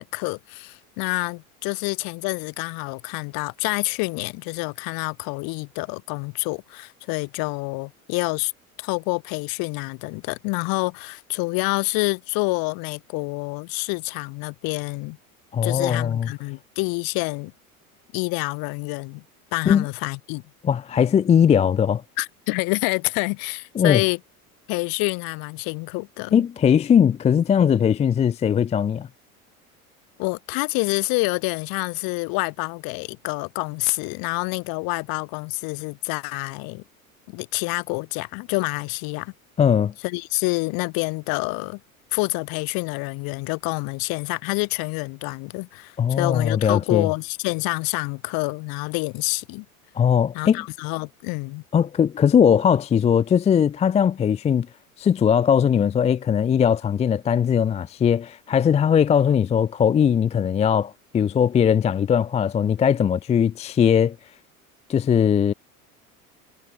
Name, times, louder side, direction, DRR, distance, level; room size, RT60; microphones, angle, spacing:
voice 1, 0.0-8.5 8.8-15.2 15.6-17.5 18.1-19.2 19.5-20.4 22.2-24.2 24.7-26.5 30.2-36.8 37.3-39.3 40.0-41.8 42.1-49.6 50.3-51.6, left 28 dB, 50° left, 3.3 m, -27 dB
voice 2, 15.5-16.3 19.7-19.9 20.6-22.0 23.8-24.0 26.3-29.1 39.6-39.9 46.0-47.1 50.0-50.6 51.7-54.7 55.0-64.2 64.9-65.5, left 8 dB, 15° left, 0.5 m, -19 dB
figure-of-eight pair, 75°, 44 cm